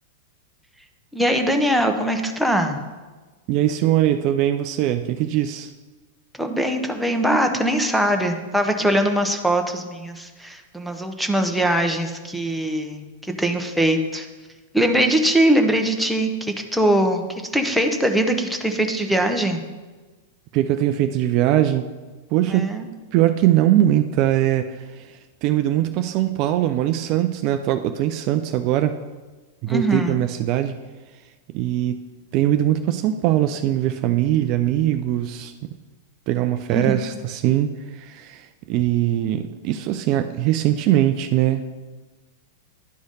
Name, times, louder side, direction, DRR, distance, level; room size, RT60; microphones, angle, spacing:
voice 1, 1.1-2.8 6.4-13.1 13.4-14.3 14.7-17.2 17.5-19.6 22.5-22.9 29.7-30.2 36.7-36.9, right 1 dB, ahead, 3 dB, 0.9 m, -21 dB
voice 2, 3.5-5.7 20.5-21.9 22.3-22.7 23.1-29.0 29.6-30.7 31.5-32.0 32.3-35.7 36.3-41.7, right 12 dB, 45° right, 8 dB, 0.4 m, -21 dB
11.5 x 4.8 x 4.1 m, 1.3 s
figure-of-eight pair, 95°, 0 cm